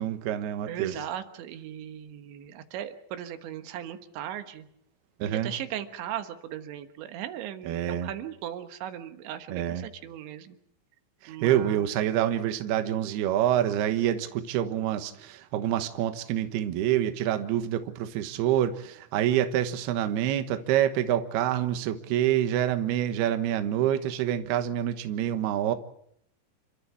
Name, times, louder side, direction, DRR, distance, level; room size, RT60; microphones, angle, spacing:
voice 1, 0.0-0.9 5.2-5.5 7.7-8.1 9.5-9.9 11.2-25.7, right 11 dB, 70° right, 9 dB, 3.0 m, -27 dB
voice 2, 0.7-4.7 5.2-10.6 11.3-11.8, right 10 dB, 85° right, 8 dB, 3.7 m, -38 dB
29.5 x 13.5 x 8.5 m, 0.71 s
omnidirectional pair, 5.1 m